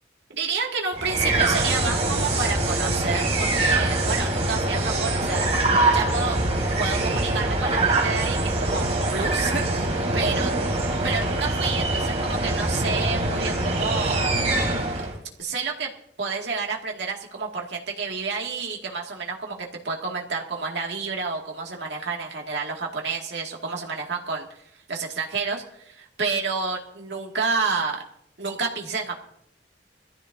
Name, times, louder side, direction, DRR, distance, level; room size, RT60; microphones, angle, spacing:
voice 1, 0.3-5.5 5.9-6.4 6.8-10.5 11.0-14.3 15.4-15.9 16.2-24.5 24.9-28.0 28.4-29.2, right 4 dB, 75° right, -1 dB, 2.3 m, -29 dB
sound 1, 0.9-15.2, right 2 dB, 35° right, 3.0 m, -24 dB
22.0 x 14.5 x 2.8 m, 0.70 s
head